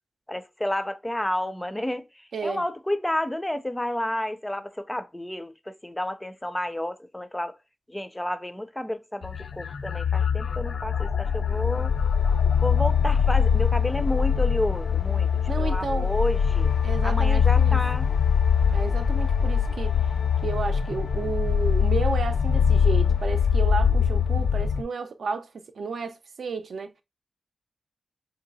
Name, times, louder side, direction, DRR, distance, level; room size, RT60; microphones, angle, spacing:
voice 1, 0.3-7.6 7.9-11.9 12.6-15.3 15.6-16.7 17.0-18.1, left 1 dB, 10° left, 0.4 m, -31 dB
voice 2, 2.3-2.6 15.5-16.1 16.8-17.8 18.7-20.0 20.4-27.0, right 4 dB, 85° right, 0.5 m, -32 dB
sound 1, 9.2-24.8, left 7 dB, 80° left, 0.4 m, -23 dB
3.2 x 2.8 x 4.0 m
wide cardioid pair, 120°, 0 cm